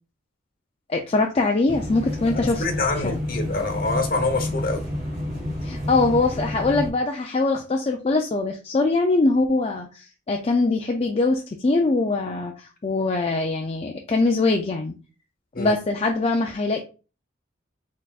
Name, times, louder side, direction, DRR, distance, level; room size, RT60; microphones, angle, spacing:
voice 1, 0.9-2.6 3.0-3.2 5.6-14.9 15.6-16.8, left 3 dB, 30° left, 0.4 m, -22 dB
sound 1, 1.7-6.9, left 1 dB, 50° right, 1.6 m, -30 dB
voice 2, 2.3-4.8 15.5-15.7, left 3 dB, 50° left, 1.0 m, -26 dB
4.3 x 4.1 x 2.4 m
head